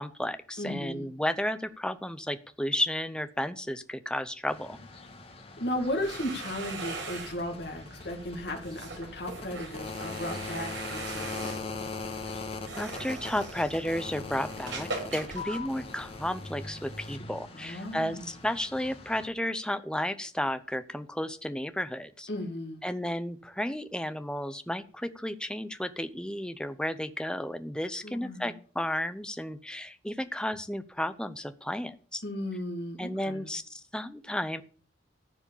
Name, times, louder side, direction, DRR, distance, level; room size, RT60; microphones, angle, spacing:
voice 1, 0.0-4.8 12.7-22.3 22.8-32.2 33.0-34.6, left 1 dB, 5° left, 11 dB, 0.6 m, -33 dB
voice 2, 0.6-1.1 5.6-11.7 17.5-18.3 22.3-22.8 28.0-28.5 32.2-33.5, left 1 dB, 55° left, 2 dB, 2.2 m, -35 dB
sound 1, 4.5-19.3, left 3 dB, 30° left, 1.6 m, -41 dB
sound 2, 5.7-16.4, right 3 dB, 80° right, 5.2 m, -42 dB
14.5 x 4.9 x 8.8 m, 0.43 s
head